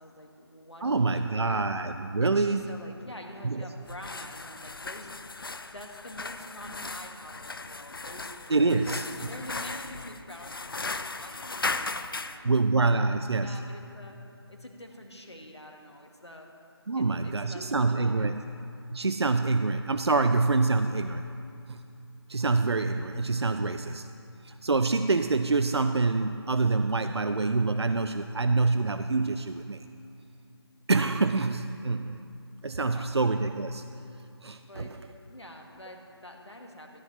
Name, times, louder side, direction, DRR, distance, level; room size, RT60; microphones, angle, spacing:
voice 1, 0.0-1.6 2.2-5.2 5.7-8.3 8.7-12.5 13.1-14.2 14.5-16.5 16.9-18.3 32.9-33.1 34.6-35.0 35.3-37.0, left 1 dB, 80° left, 2 dB, 1.8 m, -46 dB
voice 2, 0.8-2.8 3.4-3.6 8.5-9.0 12.4-13.6 16.9-18.4 18.9-21.2 21.7-21.8 22.3-24.1 24.4-29.8 30.9-32.2 32.6-33.8 34.4-34.9, right 3 dB, 75° right, 9 dB, 0.4 m, -26 dB
sound 1, 3.8-12.4, left 3 dB, 55° left, 0.5 m, -37 dB
14.0 x 10.5 x 3.2 m, 2.5 s
figure-of-eight pair, 155°, 14 cm